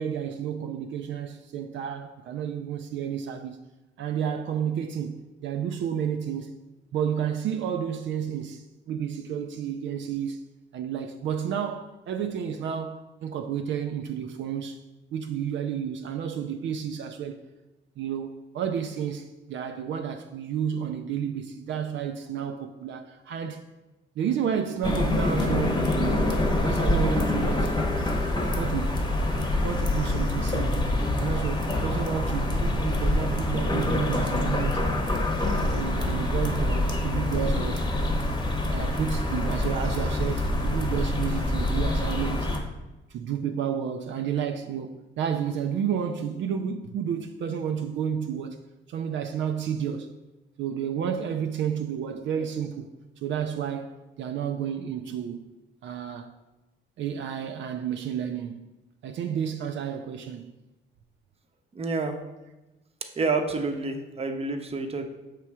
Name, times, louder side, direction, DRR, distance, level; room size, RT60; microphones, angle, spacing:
voice 1, 0.0-3.6 4.0-6.5 6.9-10.4 10.7-14.8 15.1-17.4 18.0-23.7 24.2-27.7 28.5-30.9 31.2-34.9 35.5-37.9 38.6-42.5 43.1-48.6 48.9-50.1 50.6-52.9 53.2-55.5 55.8-56.3 57.0-58.6 59.0-60.5, right 8 dB, 70° right, 0.4 m, -31 dB
sound 1, 24.8-42.6, left 1 dB, 20° left, 1.0 m, -26 dB
voice 2, 61.7-62.2 63.2-65.0, right 3 dB, 30° right, 0.7 m, -28 dB
6.7 x 3.1 x 4.7 m
cardioid pair, 90°, 20 cm